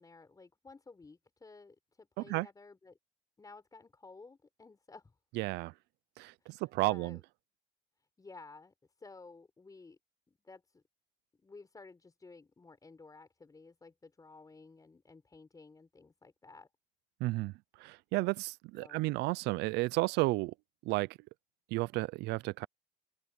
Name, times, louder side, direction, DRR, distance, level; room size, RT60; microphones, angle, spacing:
voice 1, 0.0-3.0 3.4-5.1 6.4-7.2 8.2-10.0 10.4-10.8 11.4-16.7 18.7-19.1, left 3 dB, 20° left, 4.6 m, -54 dB
voice 2, 2.2-2.5 5.4-5.7 6.2-7.2 17.2-17.5 17.8-20.5 20.9-21.1 21.7-22.7, right 21 dB, 90° right, 0.4 m, -32 dB
open air
cardioid pair, 110°, 17 cm